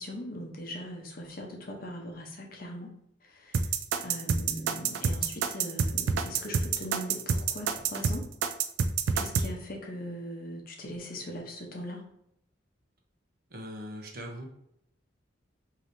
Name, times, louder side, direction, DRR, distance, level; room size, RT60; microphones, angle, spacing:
voice 1, 0.0-2.9 3.2-8.3 9.1-12.1, equal, 50° left, 1 dB, 0.8 m, -40 dB
sound 1, 3.5-9.5, right 6 dB, 75° right, 0.4 m, -27 dB
voice 2, 13.5-14.5, equal, 50° right, 1 dB, 0.7 m, -40 dB
4.8 x 2.8 x 2.6 m, 0.75 s
head